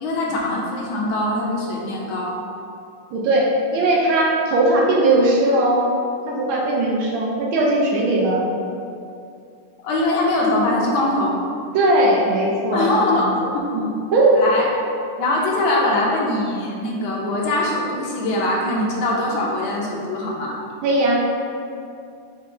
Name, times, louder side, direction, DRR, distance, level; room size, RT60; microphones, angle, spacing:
voice 1, 0.0-2.4 9.8-11.4 12.7-13.3 13.7-13.9 14.3-14.6 15.2-20.6, left 2 dB, 75° left, -3 dB, 1.4 m, -22 dB
voice 2, 3.1-5.9 6.3-8.5 11.7-13.3 13.7-14.4 20.8-21.2, right 2 dB, 75° right, -3 dB, 1.3 m, -19 dB
5.4 x 2.5 x 3.2 m, 2.5 s
omnidirectional pair, 2.3 m